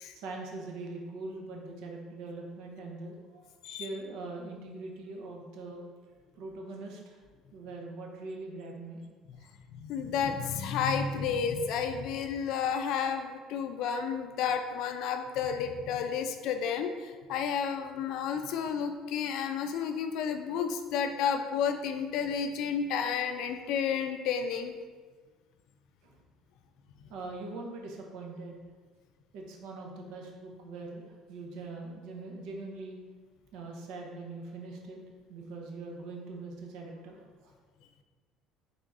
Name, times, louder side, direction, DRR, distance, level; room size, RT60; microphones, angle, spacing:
voice 1, 0.1-5.8 6.4-7.2 7.5-9.0 9.4-9.5 26.0-26.1 27.1-28.6 29.3-33.0 33.5-35.0 35.3-37.2, right 3 dB, 70° right, 0 dB, 0.7 m, -42 dB
voice 2, 9.7-24.7 27.0-27.1, left 7 dB, 60° left, 7 dB, 0.4 m, -31 dB
3.9 x 3.5 x 3.5 m, 1.4 s
cardioid pair, 160°, 0 cm